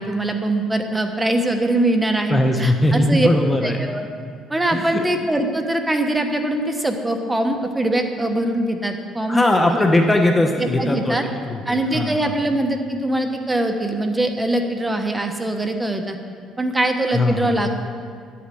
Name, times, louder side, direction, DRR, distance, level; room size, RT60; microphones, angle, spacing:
voice 1, 0.0-3.3 3.6-4.1 4.5-9.4 9.8-9.9 10.6-11.2 11.7-16.2 16.6-17.7, right 1 dB, 10° right, 5 dB, 1.1 m, -22 dB
voice 2, 2.3-3.9 4.7-5.0 9.3-12.3 17.1-17.5, left 1 dB, 15° left, 3 dB, 0.9 m, -20 dB
11.0 x 8.6 x 7.7 m, 2.1 s
cardioid pair, 120°, 0 cm